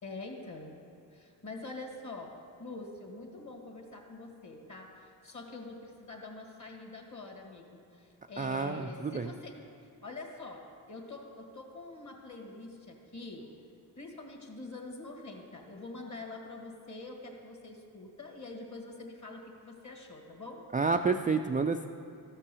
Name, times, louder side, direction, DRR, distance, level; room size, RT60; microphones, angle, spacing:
voice 1, 0.0-0.7 1.1-9.6 10.0-13.5 14.0-20.6, left 2 dB, 40° left, 1 dB, 2.1 m, -45 dB
voice 2, 8.4-9.3 20.7-21.9, right 4 dB, 20° right, 5 dB, 0.3 m, -29 dB
13.5 x 5.5 x 6.9 m, 2.4 s
cardioid pair, 65°, 45 cm